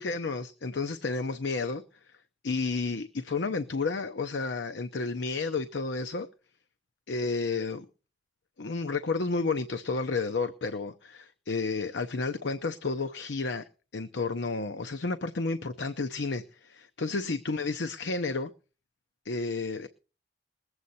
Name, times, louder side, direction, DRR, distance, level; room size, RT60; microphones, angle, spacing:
voice 1, 0.0-1.8 2.4-6.3 7.1-7.9 8.6-13.6 13.9-18.5 19.2-19.9, left 3 dB, 80° left, 0.7 m, -31 dB
21.0 x 8.1 x 4.2 m
head